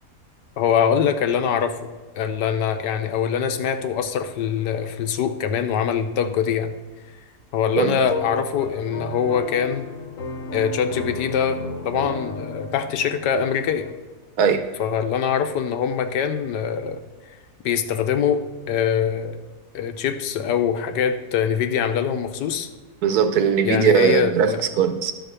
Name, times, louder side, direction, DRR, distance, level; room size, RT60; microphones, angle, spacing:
voice 1, 0.6-1.9 2.2-6.7 7.5-9.9 10.5-13.9 14.8-17.0 17.6-19.4 19.7-22.7 23.6-24.6, left 7 dB, 85° left, 8 dB, 1.4 m, -23 dB
sound 1, 8.0-13.9, left 3 dB, 60° left, 1.2 m, -33 dB
voice 2, 23.0-24.5 24.8-25.1, right 7 dB, 70° right, 9 dB, 1.2 m, -19 dB
11.5 x 4.4 x 6.8 m, 1.3 s
omnidirectional pair, 1.8 m